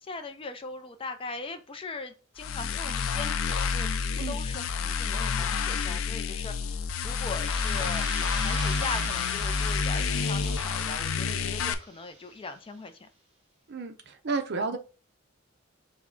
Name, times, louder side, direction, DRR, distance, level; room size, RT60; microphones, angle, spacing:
voice 1, 0.0-8.1 8.4-13.1 14.7-14.8, left 3 dB, 25° left, 9 dB, 0.4 m, -40 dB
sound 1, 2.4-11.7, left 5 dB, 85° left, 0.4 m, -29 dB
sound 2, 6.9-12.6, right 2 dB, 30° right, 1.2 m, -43 dB
voice 2, 13.7-14.8, right 4 dB, 60° right, 8 dB, 0.6 m, -31 dB
3.5 x 3.2 x 3.7 m, 0.33 s
head